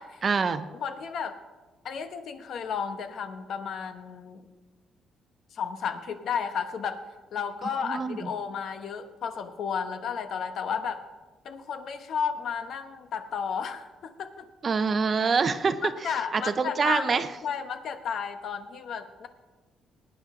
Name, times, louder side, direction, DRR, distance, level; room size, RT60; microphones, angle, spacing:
voice 1, 0.2-0.7 7.8-8.3 14.6-15.8 16.0-17.3, right 5 dB, 35° right, 11 dB, 0.7 m, -26 dB
voice 2, 0.8-1.4 1.8-4.5 5.5-7.0 7.3-11.0 11.4-14.5 15.8-19.3, left 7 dB, 60° left, 8 dB, 1.0 m, -33 dB
20.5 x 9.4 x 3.7 m, 1.2 s
cardioid pair, 125°, 0 cm